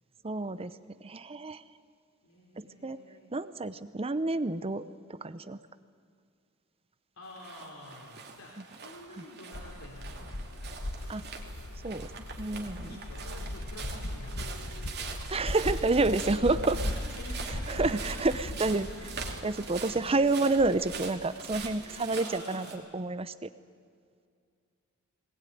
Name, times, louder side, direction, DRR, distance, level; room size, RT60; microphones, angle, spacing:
voice 1, 0.2-0.7 1.0-1.6 2.6-3.0 3.3-4.8 5.1-5.6 11.1-11.2 11.8-12.1 12.4-13.0 15.3-16.8 17.7-18.9 19.4-23.5, right 3 dB, 30° right, 14 dB, 0.7 m, -29 dB
voice 2, 2.2-3.3 7.2-10.5 12.9-15.1 15.6-15.8 16.5-18.4 18.6-20.0 22.1-22.8, left 1 dB, 85° left, -2 dB, 3.9 m, -49 dB
sound 1, 7.3-22.8, right 5 dB, 50° right, 2.7 m, -43 dB
sound 2, 9.5-22.2, left 1 dB, 70° left, 1.4 m, -39 dB
20.5 x 20.0 x 9.4 m, 2.2 s
head